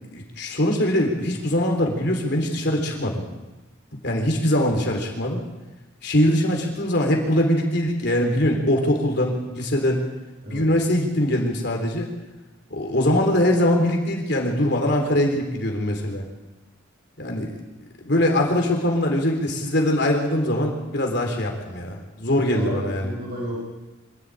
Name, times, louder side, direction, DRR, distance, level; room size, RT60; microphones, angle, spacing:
voice 1, 0.1-3.2 4.0-5.4 6.0-10.0 10.5-12.1 12.7-16.2 17.2-17.5 18.0-23.1, left 1 dB, 60° left, 1 dB, 3.6 m, -22 dB
voice 2, 22.4-23.6, equal, 50° right, -1 dB, 5.6 m, -32 dB
25.5 x 12.5 x 9.0 m, 1.1 s
head